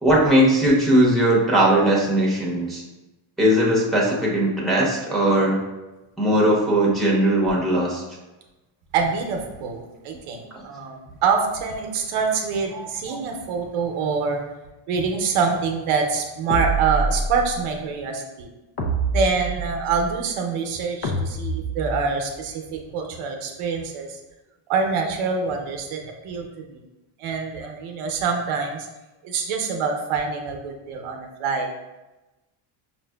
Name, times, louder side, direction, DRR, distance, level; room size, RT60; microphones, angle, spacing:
voice 1, 0.0-2.8 3.4-5.6 6.2-8.0 12.7-12.8 13.1-13.2, right 1 dB, ahead, -4 dB, 0.9 m, -19 dB
voice 2, 8.9-14.4 14.9-18.5 19.1-24.2 24.7-26.8 27.2-28.9 29.2-31.7, right 5 dB, 80° right, 3 dB, 0.7 m, -25 dB
sound 1, 16.5-17.6 18.8-20.0 21.0-22.3, right 2 dB, 55° left, 0.7 m, -26 dB
5.3 x 2.5 x 2.3 m, 1.1 s
cardioid pair, 115°, 49 cm